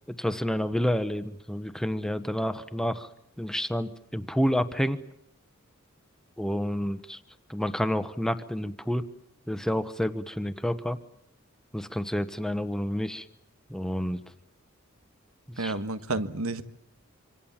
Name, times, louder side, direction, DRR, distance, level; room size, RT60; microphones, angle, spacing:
voice 1, 0.2-3.1 3.4-5.0 6.4-7.2 7.5-9.0 9.5-11.0 11.7-13.2 13.7-14.2 15.6-15.7, equal, ahead, 10 dB, 1.0 m, -29 dB
voice 2, 15.6-16.6, right 2 dB, 85° right, 11 dB, 1.5 m, -30 dB
26.5 x 26.5 x 7.3 m, 0.77 s
head